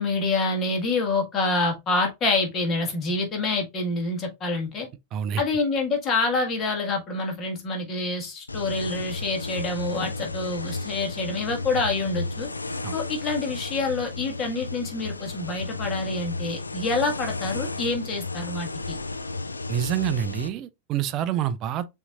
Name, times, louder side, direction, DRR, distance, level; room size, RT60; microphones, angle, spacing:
voice 1, 0.0-4.9 5.4-12.5 12.9-18.9, left 3 dB, 25° left, 1.6 m, -27 dB
voice 2, 5.1-5.4 12.8-13.0 19.7-21.9, right 10 dB, 35° right, 0.5 m, -27 dB
sound 1, 8.5-20.5, left 3 dB, 80° left, 0.4 m, -33 dB
6.9 x 2.8 x 2.4 m
figure-of-eight pair, 90°, 0 cm